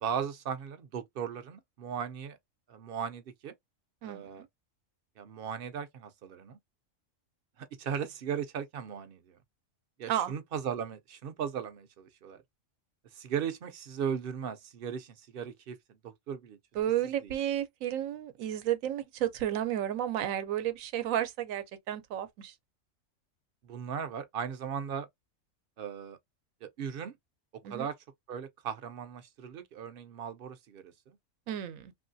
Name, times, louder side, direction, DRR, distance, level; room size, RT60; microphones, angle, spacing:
voice 1, 0.0-2.4 2.7-3.5 4.0-4.5 5.2-6.6 7.6-9.4 10.0-12.4 13.1-16.6 23.6-25.1 25.8-26.2 26.6-27.2 27.5-27.9 28.3-31.2, right 7 dB, 55° right, 0.7 m, -37 dB
voice 2, 4.0-4.5 10.1-10.3 16.7-22.5 27.6-27.9 31.5-31.9, right 11 dB, 85° right, 1.0 m, -32 dB
3.0 x 2.5 x 2.5 m
omnidirectional pair, 1.4 m